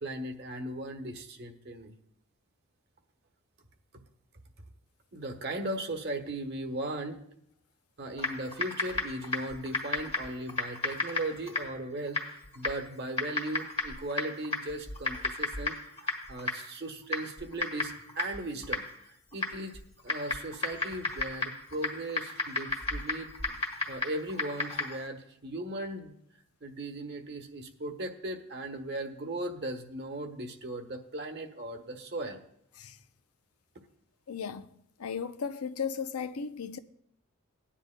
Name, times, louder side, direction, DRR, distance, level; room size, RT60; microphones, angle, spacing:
voice 1, 0.0-2.0 5.1-7.2 8.0-23.3 23.9-26.2 26.6-32.4, right 1 dB, 50° right, 1.1 m, -38 dB
Typing, 8.2-25.1, left 2 dB, 25° left, 1.6 m, -35 dB
voice 2, 34.3-36.8, left 6 dB, 90° left, 0.6 m, -36 dB
17.5 x 10.0 x 2.2 m
head